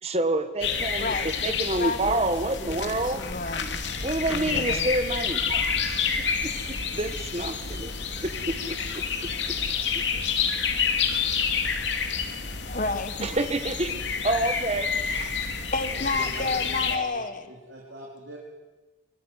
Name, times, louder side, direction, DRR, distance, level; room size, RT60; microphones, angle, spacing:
voice 1, 0.0-1.1 1.4-3.2 4.0-6.0 6.4-6.5 6.9-7.9 8.2-9.6 9.9-10.0 13.2-14.0 14.2-15.5, right 1 dB, 35° right, 9 dB, 1.7 m, -28 dB
sound 1, 0.6-17.0, left 6 dB, 70° left, 2.6 m, -29 dB
voice 2, 1.0-3.8 4.3-4.9 12.7-13.3 15.7-17.5, left 3 dB, 45° left, 10 dB, 1.6 m, -31 dB
voice 3, 15.8-18.4, right 1 dB, 75° right, -1 dB, 4.0 m, -42 dB
25.0 x 23.5 x 9.4 m, 1.2 s
head